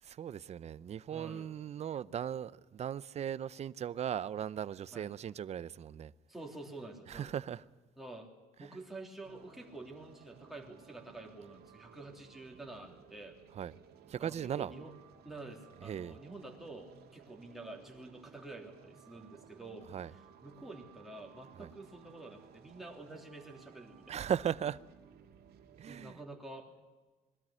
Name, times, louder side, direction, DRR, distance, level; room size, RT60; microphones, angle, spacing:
voice 1, 0.0-6.1 7.1-7.6 8.6-8.8 13.5-13.7 14.1-14.7 15.8-16.2 19.9-20.1 21.6-21.7 24.1-24.8 25.8-26.2, right 9 dB, 40° right, 0.6 m, -38 dB
voice 2, 1.1-1.5 4.9-5.1 6.3-7.3 8.0-8.3 8.6-13.4 14.2-14.9 15.2-24.2 25.9-26.7, right 2 dB, ahead, 3.2 m, -48 dB
sound 1, 9.2-26.2, right 8 dB, 70° right, 2.1 m, -59 dB
21.0 x 13.5 x 10.0 m
cardioid pair, 110°, 17 cm